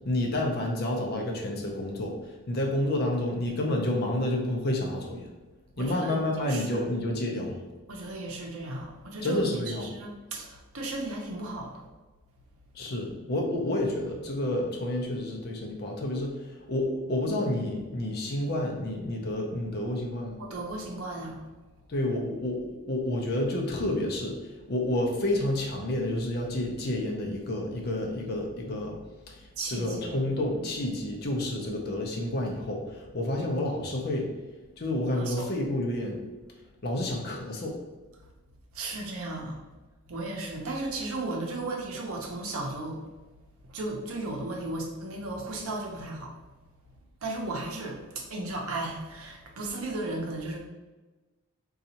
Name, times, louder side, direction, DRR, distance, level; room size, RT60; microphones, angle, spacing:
voice 1, 0.0-5.3 5.8-7.6 9.2-9.9 12.7-20.4 21.9-29.0 29.3-34.3 34.8-36.2 36.8-37.8, left 1 dB, 45° left, 0 dB, 0.5 m, -29 dB
voice 2, 5.8-6.2 6.5-6.9 7.9-11.8 20.4-21.4 29.6-30.2 31.6-31.7 35.1-35.5 38.7-39.6 40.1-43.0 43.7-46.3 47.2-50.6, right 2 dB, 75° right, 0 dB, 0.6 m, -35 dB
3.9 x 2.3 x 2.8 m, 1.2 s
head